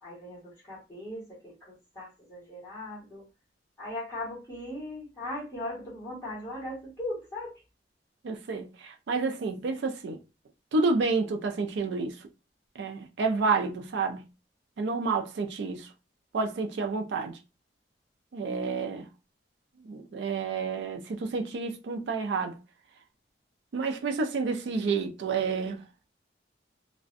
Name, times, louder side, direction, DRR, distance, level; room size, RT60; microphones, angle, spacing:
voice 1, 0.0-3.2 3.8-7.5, left 1 dB, 15° left, 1.2 m, -39 dB
voice 2, 8.2-10.2 10.7-12.2 12.8-14.2 14.8-15.9 16.3-17.4 18.3-19.0 19.8-22.6 23.7-25.8, right 4 dB, 75° right, 0.4 m, -29 dB
2.4 x 2.1 x 2.5 m
head